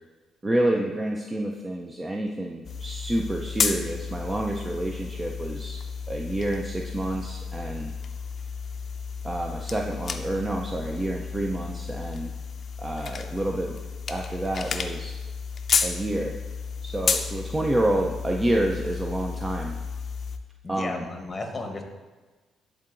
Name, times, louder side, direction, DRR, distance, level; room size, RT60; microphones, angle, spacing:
voice 1, 0.4-5.8 6.1-7.9 9.2-12.3 12.8-13.8 14.1-15.2 15.8-16.4 16.8-19.8 20.7-21.0, right 1 dB, 20° right, 0 dB, 0.4 m, -28 dB
sound 1, 2.6-20.4, left 5 dB, 45° left, 0.5 m, -32 dB
voice 2, 20.6-21.8, left 2 dB, 25° left, 3 dB, 0.8 m, -34 dB
10.5 x 3.8 x 2.5 m, 1.3 s
cardioid pair, 90°, 0 cm